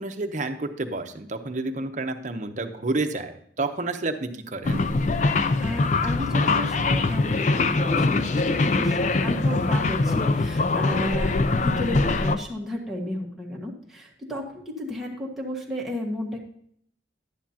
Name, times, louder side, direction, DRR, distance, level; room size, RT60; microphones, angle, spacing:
voice 1, 0.0-4.8, right 2 dB, 45° right, 7 dB, 0.8 m, -30 dB
sound 1, 4.6-12.4, left 3 dB, 40° left, 0.5 m, -23 dB
voice 2, 5.6-16.4, left 1 dB, ahead, -4 dB, 1.5 m, -33 dB
11.5 x 9.7 x 2.8 m, 0.67 s
head